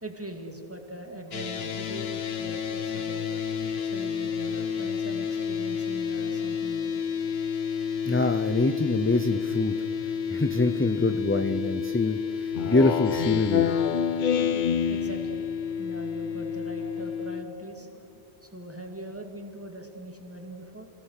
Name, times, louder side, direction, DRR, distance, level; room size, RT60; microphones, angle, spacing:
voice 1, 0.0-3.3 3.9-7.0 14.5-15.5 15.8-20.9, right 1 dB, 15° right, 3 dB, 2.3 m, -41 dB
sound 1, 1.3-17.4, left 7 dB, 75° left, 1.2 m, -31 dB
voice 2, 8.1-9.7 10.3-13.7, left 2 dB, 15° left, 8 dB, 0.5 m, -25 dB
Speech synthesizer, 12.6-15.6, left 8 dB, 55° left, 0.7 m, -27 dB
28.0 x 17.0 x 6.5 m, 2.9 s
omnidirectional pair, 1.1 m